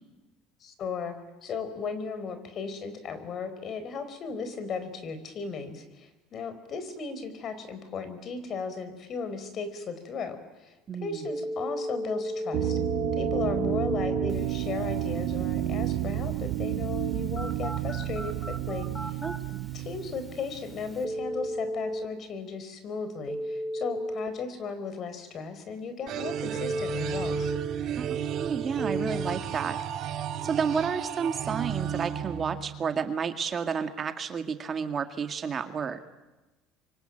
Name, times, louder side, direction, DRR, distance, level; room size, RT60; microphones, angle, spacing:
voice 1, 0.6-10.7 11.0-12.8 13.1-19.2 19.7-27.5, left 5 dB, 45° left, 11 dB, 4.6 m, -36 dB
voice 2, 10.9-11.2 19.2-19.7 28.0-29.8 30.4-36.0, right 6 dB, 35° right, 8 dB, 2.0 m, -31 dB
Telephone, 11.2-22.1 23.3-24.3 26.6-27.6 28.8-29.3, equal, 5° left, 3.9 m, -35 dB
sound 1, 12.5-21.2, right 14 dB, 70° right, 2.1 m, -31 dB
sound 2, 26.1-33.1, right 9 dB, 55° right, 1.8 m, -33 dB
27.0 x 24.0 x 9.1 m, 1.1 s
supercardioid pair, 115°, 0 cm